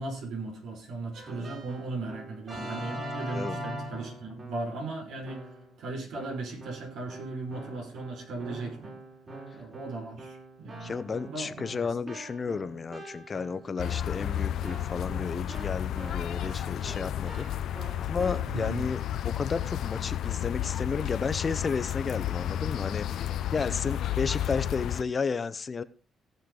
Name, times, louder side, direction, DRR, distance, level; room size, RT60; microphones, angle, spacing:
voice 1, 0.0-5.5 5.8-9.0 9.5-11.0 11.3-11.9 18.5-18.8, right 3 dB, 80° right, 5.1 m, -37 dB
Keyboard (musical), 1.1-4.8 5.2-5.7 6.1-18.7, right 1 dB, 40° right, 6.1 m, -43 dB
voice 2, 10.8-17.5 18.0-23.1 23.5-25.8, left 5 dB, 35° left, 0.8 m, -32 dB
sound 1, 13.8-25.0, left 11 dB, 75° left, 0.6 m, -32 dB
17.5 x 6.7 x 3.9 m
cardioid pair, 90°, 0 cm